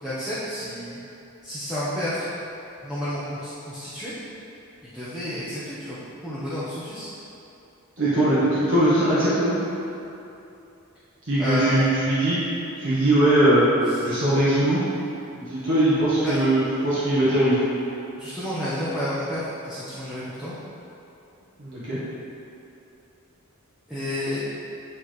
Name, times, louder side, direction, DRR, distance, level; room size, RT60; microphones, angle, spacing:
voice 1, 0.0-1.0 1.4-2.2 2.8-4.1 4.8-7.1 11.4-11.9 13.9-14.0 16.2-16.5 18.2-20.5 23.9-24.4, left 1 dB, 5° right, -12 dB, 0.9 m, -31 dB
voice 2, 8.0-9.5 11.3-12.4 12.8-13.7 14.0-14.8 15.3-17.6 21.6-22.0, right 1 dB, 60° right, -11 dB, 1.4 m, -20 dB
9.0 x 4.2 x 3.2 m, 2.8 s
head